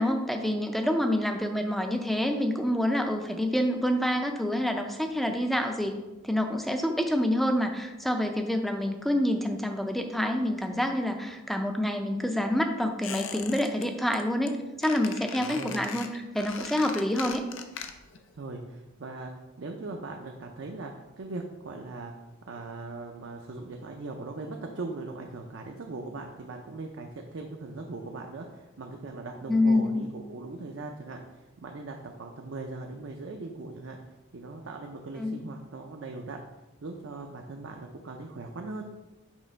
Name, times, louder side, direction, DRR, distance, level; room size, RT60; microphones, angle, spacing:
voice 1, 0.0-6.0 6.2-17.4 29.5-30.0 35.2-35.4, left 1 dB, ahead, 5 dB, 0.4 m, -27 dB
Squeak, 13.0-13.9 14.1-14.5 14.8-18.2 18.5-18.6, left 7 dB, 65° left, 0.5 m, -40 dB
voice 2, 15.4-15.8 18.3-22.1 22.5-34.0 34.3-36.4 36.8-38.9, right 3 dB, 60° right, 2 dB, 0.5 m, -40 dB
6.3 x 3.3 x 5.1 m, 1.1 s
head